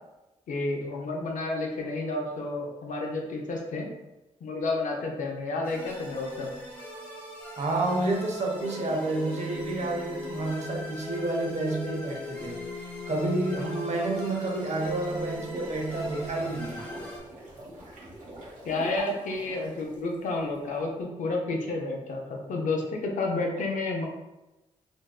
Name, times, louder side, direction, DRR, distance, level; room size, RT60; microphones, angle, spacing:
voice 1, 0.5-3.9 4.4-6.5 18.7-24.1, left 2 dB, 70° left, 0 dB, 0.5 m, -30 dB
sound 1, 5.6-17.2, equal, 15° left, 1.0 m, -42 dB
voice 2, 7.6-12.6 13.1-16.8, right 2 dB, 55° right, 0 dB, 0.7 m, -29 dB
sound 2, 8.7-14.9, left 5 dB, 50° left, 0.8 m, -42 dB
sound 3, 15.3-20.6, right 1 dB, 75° right, 1.0 m, -43 dB
2.6 x 2.1 x 2.3 m, 1.0 s
supercardioid pair, 50°, 14 cm